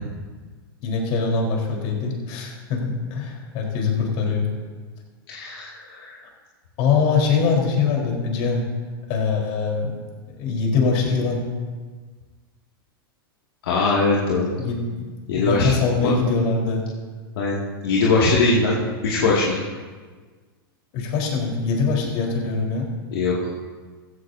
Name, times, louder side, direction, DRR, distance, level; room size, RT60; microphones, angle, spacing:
voice 1, 0.8-4.5 6.8-8.6 9.1-9.9 10.3-11.4 14.6-16.8 20.9-22.9, left 5 dB, 50° left, 0 dB, 4.2 m, -23 dB
voice 2, 5.3-6.2 13.6-14.5 15.3-15.7 16.0-16.1 17.4-17.6 17.8-18.8 19.0-19.6 23.1-23.3, left 3 dB, 75° left, -5 dB, 2.3 m, -21 dB
15.5 x 15.5 x 2.8 m, 1.5 s
hypercardioid pair, 115°, 12 cm